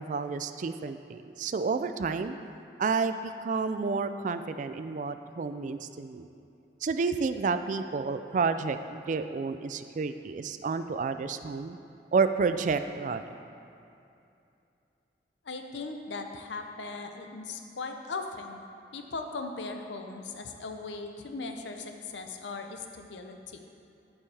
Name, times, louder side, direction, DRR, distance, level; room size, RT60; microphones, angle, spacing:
voice 1, 0.0-2.4 2.8-6.3 6.8-11.8 12.1-13.2, right 4 dB, 45° right, 10 dB, 0.3 m, -30 dB
voice 2, 15.4-18.6 18.9-23.6, left 3 dB, 90° left, 5 dB, 0.7 m, -38 dB
13.5 x 5.4 x 3.4 m, 2.6 s
head